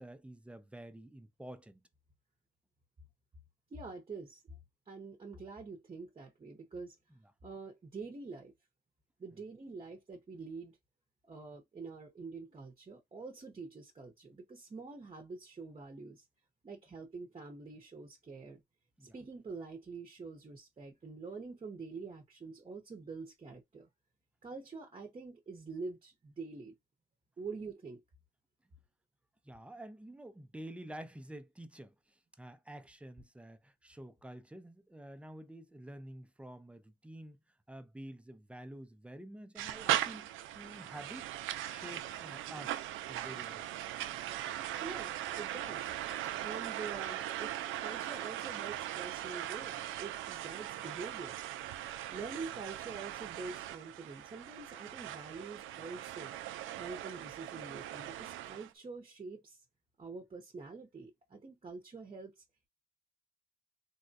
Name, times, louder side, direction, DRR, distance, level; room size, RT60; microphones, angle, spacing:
voice 1, 0.0-1.8 19.0-19.1 29.4-37.4 37.7-41.3 41.6-42.8 43.1-43.6, right 1 dB, 5° right, 0.5 m, -49 dB
voice 2, 3.7-4.6 4.9-7.0 7.4-8.5 9.2-10.8 11.2-16.2 16.6-18.6 19.0-23.9 24.4-26.8 27.4-28.0 44.8-45.9 46.4-47.5 47.8-51.4 52.1-56.4 56.8-59.6 60.0-62.4, right 4 dB, 30° right, 0.8 m, -46 dB
sound 1, 39.6-58.7, right 12 dB, 85° right, 0.4 m, -39 dB
3.5 x 2.2 x 2.6 m
cardioid pair, 90°, 20 cm